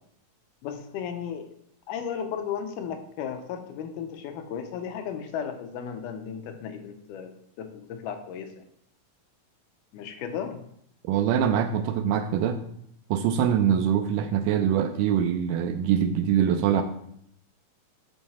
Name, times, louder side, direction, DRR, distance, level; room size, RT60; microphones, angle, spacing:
voice 1, 0.6-1.5 1.9-7.3 7.6-8.7 9.9-10.6, left 7 dB, 80° left, 7 dB, 2.1 m, -35 dB
voice 2, 11.1-12.6 13.1-16.8, right 9 dB, 80° right, 7 dB, 2.0 m, -23 dB
5.8 x 5.6 x 4.1 m, 0.70 s
omnidirectional pair, 4.0 m